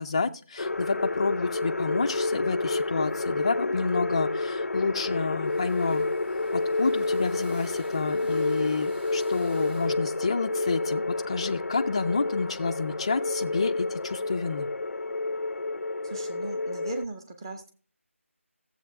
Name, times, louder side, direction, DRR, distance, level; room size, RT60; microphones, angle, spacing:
voice 1, 0.0-6.1 6.5-14.7, left 4 dB, 25° left, 6 dB, 0.4 m, -29 dB
sound 1, 0.6-17.1, left 2 dB, 85° left, 0.5 m, -30 dB
Drill, 4.5-5.1 5.4-10.0, right 2 dB, 40° right, 4.4 m, -54 dB
voice 2, 16.0-17.7, right 3 dB, 20° right, 6 dB, 1.1 m, -38 dB
14.5 x 7.7 x 3.5 m, 0.38 s
figure-of-eight pair, 170°, 8 cm